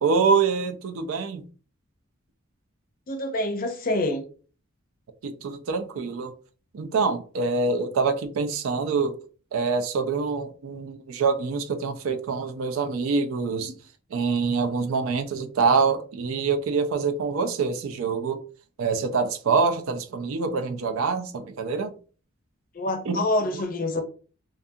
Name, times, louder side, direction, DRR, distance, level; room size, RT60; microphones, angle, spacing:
voice 1, 0.0-1.4 5.2-6.3 6.7-9.1 9.5-13.7 14.1-18.4 18.8-21.9 23.1-23.2, right 4 dB, 80° right, 0.4 m, -25 dB
voice 2, 3.1-4.2 22.7-24.0, left 1 dB, 40° left, 0.5 m, -26 dB
2.5 x 2.4 x 2.6 m
head